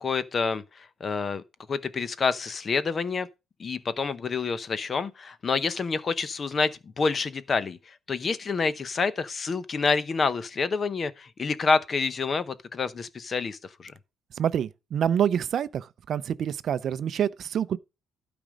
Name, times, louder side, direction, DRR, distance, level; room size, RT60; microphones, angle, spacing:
voice 1, 0.0-1.4 1.7-3.3 3.6-13.9, left 4 dB, 35° left, 0.8 m, -28 dB
voice 2, 14.4-17.8, right 9 dB, 55° right, 0.5 m, -27 dB
12.5 x 5.0 x 5.1 m
cardioid pair, 140°, 0 cm